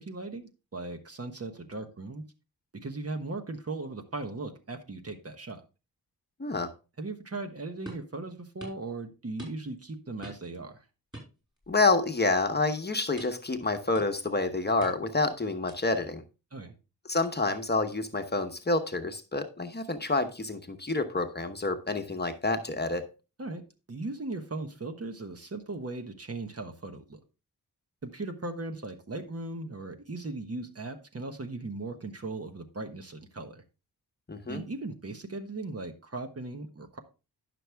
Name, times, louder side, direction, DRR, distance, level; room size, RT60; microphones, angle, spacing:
voice 1, 0.0-2.2 2.7-5.6 7.0-10.8 16.5-16.7 23.4-23.6 23.9-27.2 28.0-33.6 34.5-37.0, right 2 dB, 40° right, 6 dB, 1.3 m, -38 dB
sound 1, 7.9-8.1 8.6-8.8 9.4-9.8 10.2-10.6 11.1-11.9 12.2-12.5 13.2-13.5 13.9-14.3 14.8-15.2 15.7-16.0, equal, 10° right, 5.5 m, -46 dB
voice 2, 11.7-16.2 17.1-23.1 34.3-34.6, left 3 dB, 25° left, 6 dB, 1.0 m, -28 dB
11.0 x 6.1 x 3.4 m, 0.31 s
wide cardioid pair, 80°, 38 cm